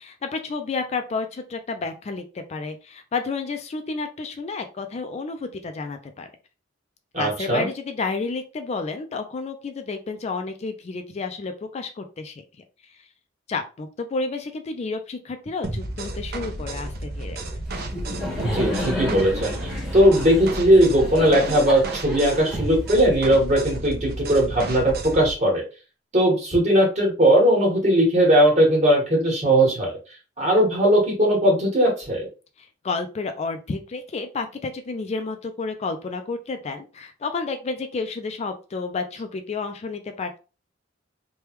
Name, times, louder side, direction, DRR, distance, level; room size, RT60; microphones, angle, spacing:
voice 1, 0.0-6.3 7.2-12.4 13.5-17.5 32.6-40.4, left 4 dB, 35° left, 7 dB, 0.3 m, -31 dB
voice 2, 7.1-7.7 18.4-19.5 19.9-25.6 26.1-30.0 30.4-32.2, right 1 dB, 40° right, -2 dB, 1.4 m, -19 dB
sound 1, 15.6-25.3, right 2 dB, 55° right, 0.6 m, -32 dB
Laughter, 17.6-23.5, left 1 dB, 5° right, 0.9 m, -31 dB
3.3 x 2.2 x 3.0 m, 0.33 s
head